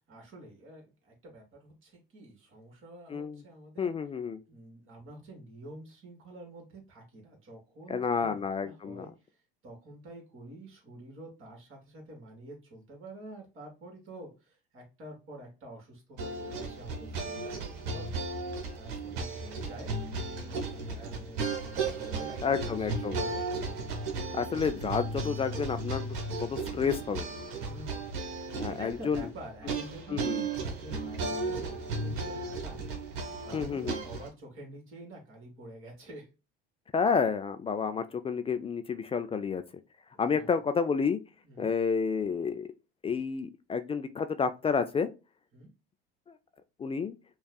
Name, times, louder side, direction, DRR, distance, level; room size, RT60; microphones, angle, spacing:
voice 1, 0.1-3.9 4.5-9.1 9.6-18.1 18.7-20.0 20.3-23.7 27.6-28.1 28.3-32.9 33.4-36.3 40.1-40.5 41.4-41.7 45.5-45.7, right 1 dB, 45° right, 2.1 m, -48 dB
voice 2, 3.1-3.4 3.8-4.4 7.9-9.1 22.4-23.2 24.3-27.3 28.6-29.3 30.1-30.5 33.5-34.0 36.9-39.6 40.2-41.2 41.6-42.7 43.0-45.1 46.8-47.2, left 5 dB, 20° left, 0.3 m, -30 dB
sound 1, 16.2-34.3, right 3 dB, 70° right, 1.2 m, -35 dB
5.2 x 2.4 x 2.2 m
hypercardioid pair, 80°, 29 cm